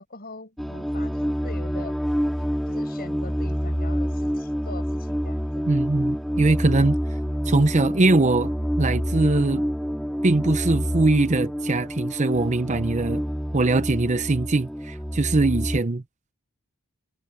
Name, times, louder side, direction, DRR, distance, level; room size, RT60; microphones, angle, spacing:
voice 1, 0.0-2.0 2.7-5.6, left 3 dB, 45° left, 7.5 m, -42 dB
sound 1, 0.6-15.8, equal, ahead, 2.0 m, -27 dB
voice 2, 5.7-7.0 7.5-9.6 10.2-13.2 13.5-16.0, right 2 dB, 30° right, 0.7 m, -21 dB
head